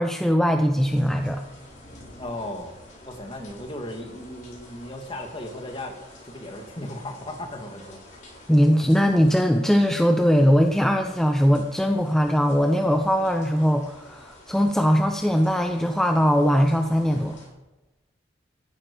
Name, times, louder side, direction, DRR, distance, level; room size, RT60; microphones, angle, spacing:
voice 1, 0.0-1.4 8.5-17.4, equal, ahead, 4 dB, 0.6 m, -20 dB
sound 1, 0.7-17.5, left 1 dB, 40° left, 6.5 m, -49 dB
voice 2, 2.2-2.7 3.1-6.0 6.2-8.0, left 1 dB, 25° left, 4 dB, 1.9 m, -36 dB
15.0 x 11.5 x 5.2 m, 1.0 s
head